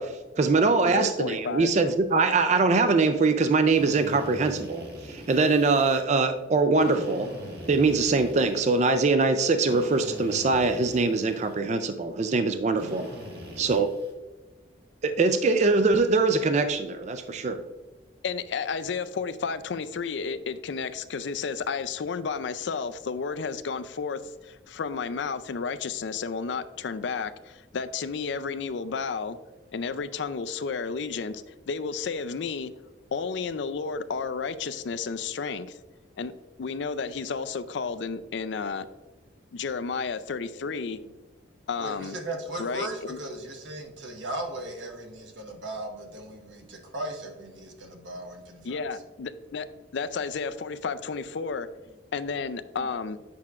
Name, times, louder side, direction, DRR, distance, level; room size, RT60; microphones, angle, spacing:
voice 1, 0.0-7.3 7.7-13.1 13.6-13.9 15.0-17.6, right 3 dB, 35° right, 0.4 m, -23 dB
voice 2, 0.9-1.7 18.2-29.4 29.7-32.7 33.1-35.8 36.2-36.3 36.6-38.9 39.5-41.0 41.7-42.2 42.6-43.2 48.6-49.7 49.9-51.7 52.1-53.2, left 5 dB, 70° left, 0.4 m, -32 dB
Drill, 3.7-6.0 6.7-9.0 9.7-11.6 12.8-14.1, equal, 55° right, 1.6 m, -42 dB
voice 3, 41.8-48.8 52.8-52.9, right 1 dB, 80° right, 1.3 m, -37 dB
8.5 x 5.7 x 2.4 m
head